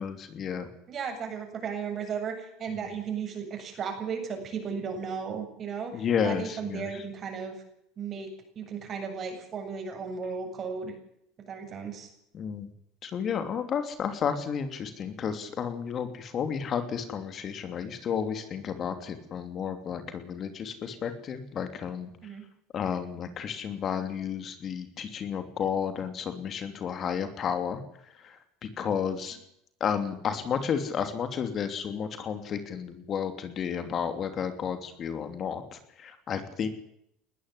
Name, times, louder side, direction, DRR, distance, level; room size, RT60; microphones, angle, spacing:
voice 1, 0.0-0.7 2.7-2.9 5.9-7.0 12.3-12.7 13.0-22.1 22.7-27.8 28.1-29.4 29.8-36.7, left 7 dB, 45° left, 8 dB, 3.0 m, -32 dB
voice 2, 0.9-5.9 6.2-7.5 8.0-8.3 8.6-10.9 11.5-12.1 22.2-22.4, right 6 dB, 40° right, 5 dB, 7.6 m, -35 dB
20.0 x 13.5 x 9.9 m, 0.74 s
supercardioid pair, 90°, 0 cm